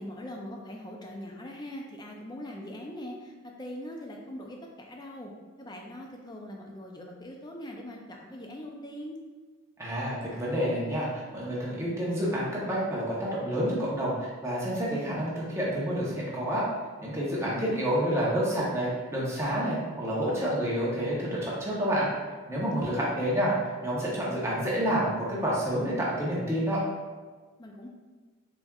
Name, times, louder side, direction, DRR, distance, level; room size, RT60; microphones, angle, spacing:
voice 1, 0.0-5.3 5.6-9.2 17.4-18.0 22.7-23.1 27.6-27.9, left 1 dB, 20° left, 1 dB, 0.4 m, -41 dB
voice 2, 9.8-16.7 17.0-22.1 22.5-23.5 23.8-26.8, equal, 10° right, -6 dB, 0.8 m, -29 dB
4.2 x 3.4 x 2.3 m, 1.4 s
head